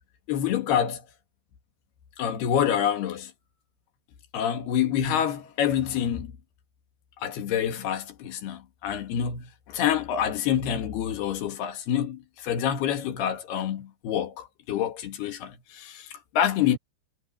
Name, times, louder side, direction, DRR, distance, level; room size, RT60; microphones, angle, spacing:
voice 1, 0.3-1.0 2.2-3.3 4.3-6.3 7.2-16.8, left 9 dB, 70° left, 3.7 m, -27 dB
omnidirectional pair, 4.9 m